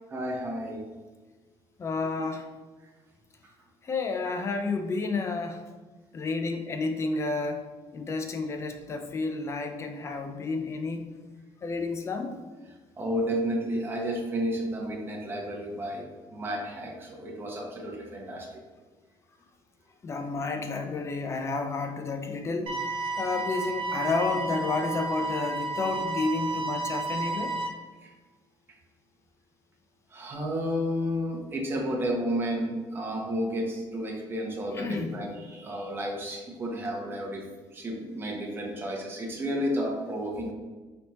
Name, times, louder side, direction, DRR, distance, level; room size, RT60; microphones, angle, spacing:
voice 1, 0.1-0.8 13.0-18.5 28.0-28.1 30.1-40.5, equal, 25° right, -1 dB, 0.8 m, -32 dB
voice 2, 1.8-2.5 3.8-5.6 6.1-7.6 7.9-11.1 11.6-12.4 20.0-22.7 23.2-27.5 34.7-35.2, left 3 dB, 30° left, 5 dB, 0.4 m, -31 dB
sound 1, 22.7-27.7, right 2 dB, 60° right, 0.8 m, -32 dB
4.1 x 3.4 x 2.9 m, 1.3 s
cardioid pair, 150°, 10 cm